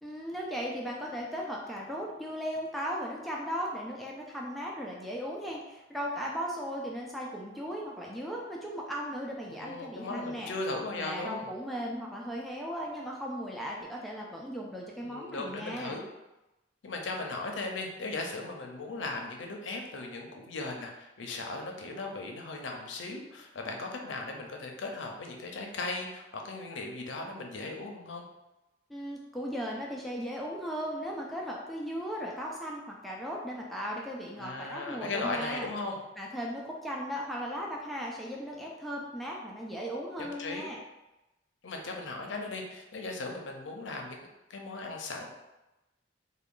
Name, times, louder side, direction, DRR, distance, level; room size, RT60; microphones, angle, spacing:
voice 1, 0.0-10.6 11.0-16.0 28.9-35.7 36.2-40.8, equal, ahead, -3 dB, 0.3 m, -37 dB
voice 2, 9.5-11.5 15.0-16.0 16.8-28.2 34.4-36.0 40.2-40.6 41.6-44.2 44.5-45.3, left 2 dB, 80° left, 2 dB, 0.6 m, -37 dB
3.3 x 2.2 x 3.6 m, 1.0 s
head